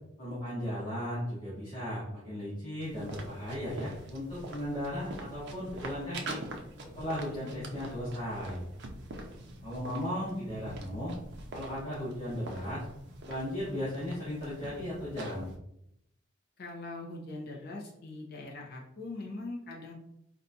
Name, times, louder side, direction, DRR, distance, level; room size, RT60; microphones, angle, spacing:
voice 1, 0.2-6.4 6.9-8.6 9.6-11.1 11.5-12.8 13.2-15.5, equal, 30° left, -11 dB, 1.2 m, -36 dB
sound 1, 2.8-15.6, right 1 dB, 55° right, 0.5 m, -45 dB
voice 2, 16.6-19.9, left 2 dB, 50° left, -2 dB, 0.6 m, -42 dB
4.1 x 2.3 x 2.6 m, 0.80 s
head